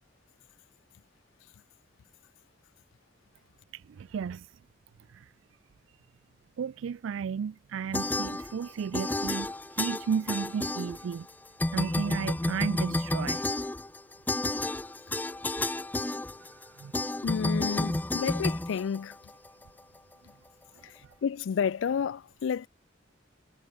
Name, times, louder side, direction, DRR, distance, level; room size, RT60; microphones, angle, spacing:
voice 1, 4.0-4.5 6.6-9.5 9.8-11.3 11.7-13.4 16.8-16.9, right 7 dB, 85° right, 0.4 m, -33 dB
sound 1, 7.9-8.7 8.9-11.3 11.6-19.5, left 2 dB, 10° left, 0.4 m, -31 dB
voice 2, 17.2-19.1 21.2-22.7, left 7 dB, 75° left, 0.4 m, -30 dB
head